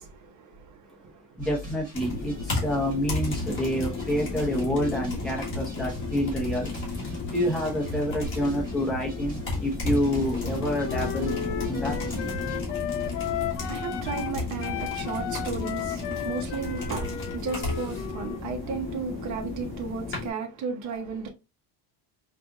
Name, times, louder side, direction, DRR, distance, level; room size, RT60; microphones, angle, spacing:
voice 1, 0.0-1.4 13.0-21.3, right 5 dB, 45° right, 0.9 m, -35 dB
voice 2, 1.4-6.8 7.3-12.0, equal, ahead, 0.9 m, -28 dB
sound 1, 1.4-12.6, equal, 20° right, 1.5 m, -40 dB
sound 2, 1.9-20.3, left 3 dB, 30° left, 1.4 m, -33 dB
Wind instrument woodwind instrument, 10.8-14.3 14.6-18.5, left 10 dB, 85° left, 0.7 m, -35 dB
4.3 x 2.6 x 2.3 m
cardioid pair, 175°, 42 cm